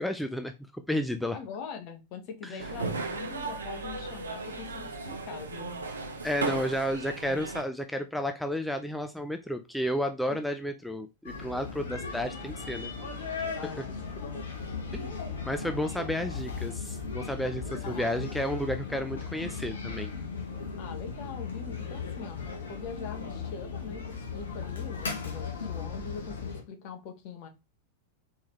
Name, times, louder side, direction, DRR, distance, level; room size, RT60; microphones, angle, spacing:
voice 1, 0.0-1.4 2.4-2.6 6.2-12.9 13.6-13.8 14.9-15.1 15.4-20.1, equal, 5° left, 0.4 m, -32 dB
voice 2, 1.3-5.7 10.3-10.4 13.6-14.4 17.8-18.3 20.8-27.5, left 6 dB, 45° left, 1.1 m, -43 dB
sound 1, 2.6-7.6, right 3 dB, 70° right, 0.8 m, -36 dB
sound 2, 11.2-26.6, left 5 dB, 70° left, 1.2 m, -37 dB
4.4 x 3.6 x 2.9 m
figure-of-eight pair, 90°, 0 cm